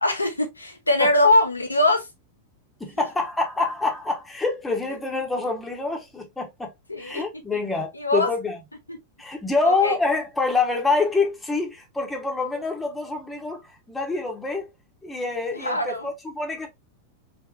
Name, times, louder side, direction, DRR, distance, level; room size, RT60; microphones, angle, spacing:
voice 1, 0.0-2.1 3.0-3.1 6.9-7.3 7.9-8.3 8.9-9.0 9.6-10.0 15.5-16.1, left 1 dB, 85° left, 0.6 m, -22 dB
voice 2, 2.8-6.7 7.0-8.6 9.2-13.6 13.9-14.7 15.0-16.7, left 3 dB, 10° left, 1.0 m, -26 dB
3.3 x 2.8 x 2.3 m
figure-of-eight pair, 90°, 0 cm